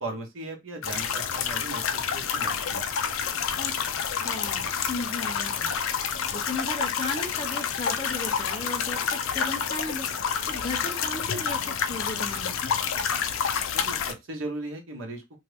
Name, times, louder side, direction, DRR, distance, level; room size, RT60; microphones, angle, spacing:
voice 1, 0.0-2.8 13.7-15.2, right 2 dB, 70° right, 2 dB, 1.1 m, -37 dB
sound 1, 0.8-14.1, left 7 dB, 70° left, 0.4 m, -29 dB
voice 2, 3.6-5.8 6.3-10.1 10.5-12.7, left 2 dB, 25° left, 1 dB, 0.7 m, -35 dB
2.8 x 2.6 x 3.3 m, 0.21 s
head